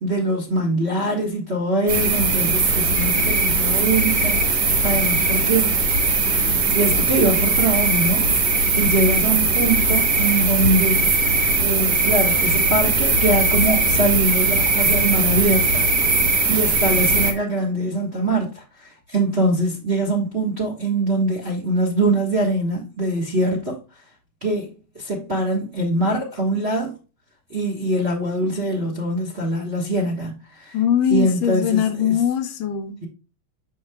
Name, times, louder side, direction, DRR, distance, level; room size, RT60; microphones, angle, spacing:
voice 1, 0.0-5.8 6.7-11.1 11.6-15.8 16.5-23.8 24.4-26.9 27.5-30.8 31.1-32.2, right 2 dB, 40° right, 0.9 m, -23 dB
sound 1, 1.9-17.3, right 3 dB, 60° right, 1.1 m, -19 dB
voice 2, 30.7-33.0, left 9 dB, 75° left, 1.7 m, -21 dB
6.5 x 6.4 x 2.3 m
omnidirectional pair, 3.5 m